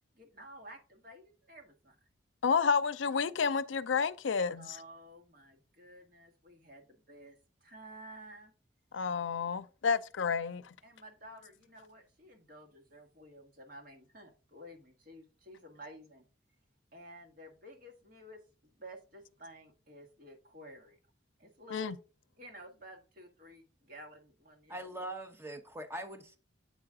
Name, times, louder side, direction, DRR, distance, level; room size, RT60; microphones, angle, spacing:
voice 1, 0.1-2.0 4.5-8.5 9.8-10.0 10.8-16.2 16.9-18.4 18.7-21.0 21.4-21.9 22.4-24.9, equal, 50° right, 1.6 m, -52 dB
voice 2, 2.4-4.8 8.9-10.6 21.7-21.9, left 5 dB, 85° left, 0.5 m, -30 dB
voice 3, 24.7-26.4, right 1 dB, 10° right, 0.9 m, -42 dB
8.3 x 4.9 x 3.6 m
head